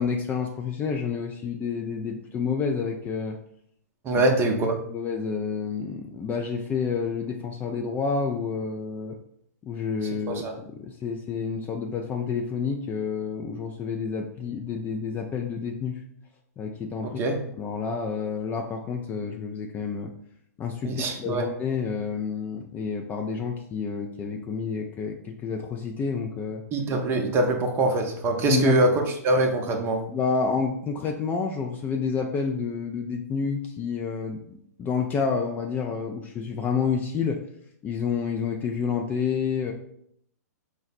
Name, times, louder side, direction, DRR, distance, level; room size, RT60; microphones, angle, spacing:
voice 1, 0.0-3.4 4.9-9.2 9.6-16.0 16.6-20.1 20.6-26.6 28.5-28.8 30.1-37.4 37.8-39.7, left 5 dB, 20° left, 2 dB, 0.3 m, -29 dB
voice 2, 4.0-4.8 10.3-10.5 17.0-17.4 20.8-21.5 26.7-30.0, right 2 dB, 25° right, 3 dB, 0.6 m, -23 dB
4.7 x 2.0 x 4.0 m, 0.69 s
hypercardioid pair, 120°, 9 cm